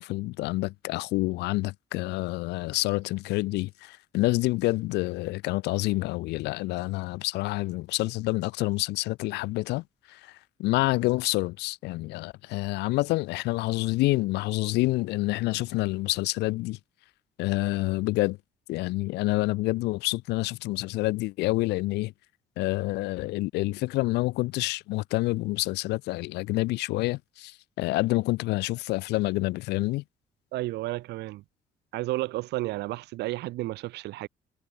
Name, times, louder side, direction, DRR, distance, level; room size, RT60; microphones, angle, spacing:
voice 1, 0.0-16.8 17.4-18.4 18.7-22.1 22.6-30.0, left 20 dB, 90° left, 3.8 m, -28 dB
voice 2, 30.5-31.4 31.9-34.3, right 18 dB, 85° right, 6.9 m, -32 dB
cardioid pair, 110°, 17 cm